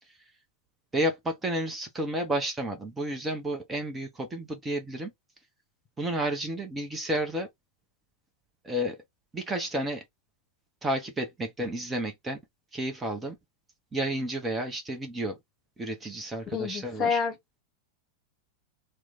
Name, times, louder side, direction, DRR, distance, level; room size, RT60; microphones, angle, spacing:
voice 1, 0.9-5.1 6.0-7.5 8.6-9.0 9.3-10.0 10.8-12.4 12.7-13.4 13.9-15.4 15.8-17.2, right 1 dB, 15° right, 0.8 m, -31 dB
voice 2, 16.5-17.6, left 5 dB, 30° left, 1.0 m, -29 dB
3.0 x 2.2 x 3.9 m
figure-of-eight pair, 90°, 0 cm